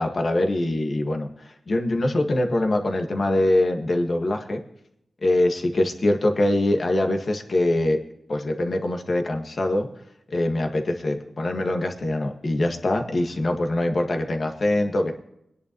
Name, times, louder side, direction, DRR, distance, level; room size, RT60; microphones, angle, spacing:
voice 1, 0.0-4.6 5.2-8.0 8.3-9.9 10.3-15.1, left 1 dB, 45° left, 3 dB, 1.7 m, -23 dB
22.0 x 10.5 x 3.1 m, 0.77 s
wide cardioid pair, 135°, 0 cm